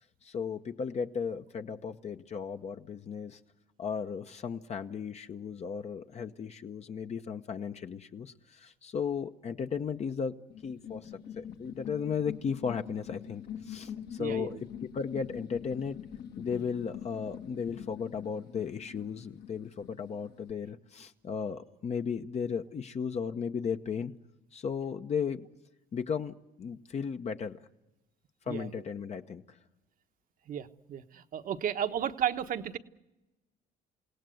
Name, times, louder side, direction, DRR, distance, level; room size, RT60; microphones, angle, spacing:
voice 1, 0.2-3.4 3.8-10.3 10.6-14.5 14.8-16.0 16.4-24.1 24.5-25.4 25.9-27.6 28.5-29.4, left 6 dB, 40° left, 6 dB, 1.0 m, -35 dB
sound 1, 10.5-20.5, left 9 dB, 70° left, 2.1 m, -44 dB
voice 2, 14.2-14.6 28.5-28.8 30.5-32.8, right 9 dB, 55° right, 8 dB, 1.2 m, -34 dB
28.5 x 17.5 x 7.9 m, 1.0 s
cardioid pair, 110°, 17 cm